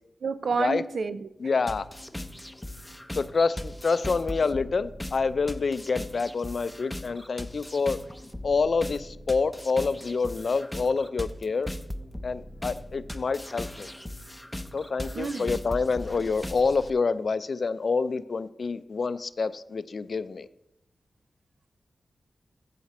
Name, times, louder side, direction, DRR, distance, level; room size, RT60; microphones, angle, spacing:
voice 1, 0.2-1.3 15.1-15.6, right 5 dB, 70° right, 12 dB, 0.5 m, -29 dB
voice 2, 1.4-1.9 3.2-8.0 8.4-11.7 12.2-13.9 14.7-20.5, left 4 dB, 60° left, 14 dB, 0.4 m, -27 dB
sound 1, 1.7-16.9, left 1 dB, 10° left, 0.6 m, -39 dB
14.0 x 5.1 x 4.2 m, 0.82 s
wide cardioid pair, 75°, 0 cm